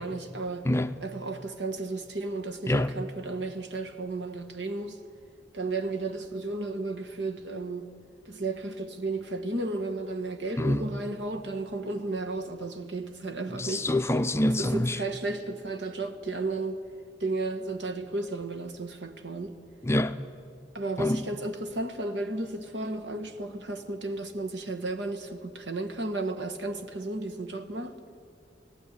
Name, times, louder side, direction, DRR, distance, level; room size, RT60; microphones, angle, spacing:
voice 1, 0.0-0.7 1.0-5.0 5.5-7.9 8.2-13.9 14.4-16.8 17.2-19.5 20.7-28.0, right 2 dB, 75° right, 1.5 m, -33 dB
voice 2, 13.6-15.0 19.8-20.1 21.0-21.2, left 1 dB, 15° left, 0.6 m, -25 dB
18.0 x 15.5 x 10.0 m
head